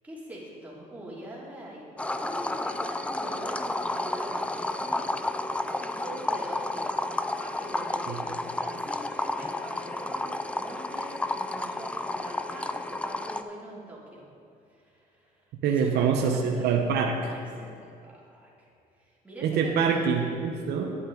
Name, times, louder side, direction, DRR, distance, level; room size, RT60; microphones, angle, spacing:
voice 1, 0.0-1.8 2.2-5.1 5.8-14.3 14.7-16.7 17.3-18.7 18.9-20.3, right 1 dB, 10° right, -5 dB, 2.7 m, -43 dB
sound 1, 2.0-13.4, left 2 dB, 5° left, 0.4 m, -31 dB
voice 2, 15.6-17.4 19.4-21.1, right 6 dB, 75° right, 3 dB, 0.9 m, -25 dB
11.0 x 8.6 x 3.8 m, 2.5 s
cardioid pair, 110°, 17 cm